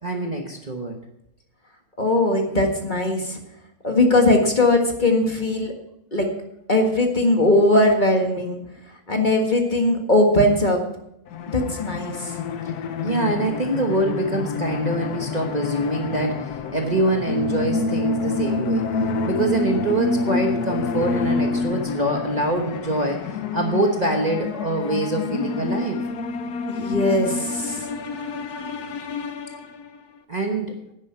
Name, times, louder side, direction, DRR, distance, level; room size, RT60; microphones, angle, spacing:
voice 1, 0.0-1.0 12.6-12.7 13.0-18.9 19.2-26.0 30.3-30.8, right 2 dB, 30° right, 2 dB, 1.2 m, -24 dB
voice 2, 2.0-3.4 3.8-5.7 6.1-6.3 6.7-8.6 9.1-10.8 11.5-12.4 26.7-27.9, left 1 dB, 30° left, 2 dB, 1.8 m, -19 dB
sound 1, 11.3-30.0, left 4 dB, 85° left, 1.4 m, -28 dB
10.5 x 10.0 x 5.7 m, 0.83 s
omnidirectional pair, 1.6 m